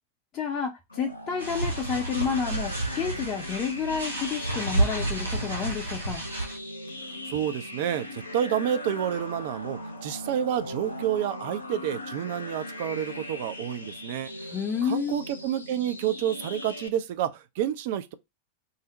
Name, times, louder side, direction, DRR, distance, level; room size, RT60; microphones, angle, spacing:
voice 1, 0.3-6.2 14.5-15.2, left 6 dB, 30° left, 0.5 m, -30 dB
sound 1, 0.9-16.9, left 1 dB, 80° left, 0.5 m, -39 dB
sound 2, 1.4-6.6, right 2 dB, 85° right, 0.7 m, -30 dB
voice 2, 7.2-14.5 14.8-18.1, right 10 dB, 50° right, 0.4 m, -29 dB
2.6 x 2.0 x 3.9 m
figure-of-eight pair, 90°, 0 cm